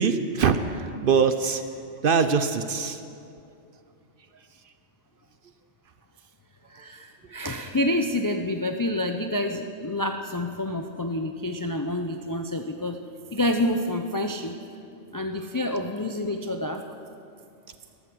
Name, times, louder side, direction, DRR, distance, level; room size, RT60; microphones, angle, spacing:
voice 1, 0.0-1.7 2.0-3.0, right 5 dB, 55° right, 10 dB, 0.7 m, -23 dB
voice 2, 6.7-13.0 13.3-14.6 15.1-16.8, left 1 dB, 35° left, 5 dB, 0.3 m, -28 dB
13.0 x 13.0 x 6.1 m, 2.5 s
omnidirectional pair, 1.3 m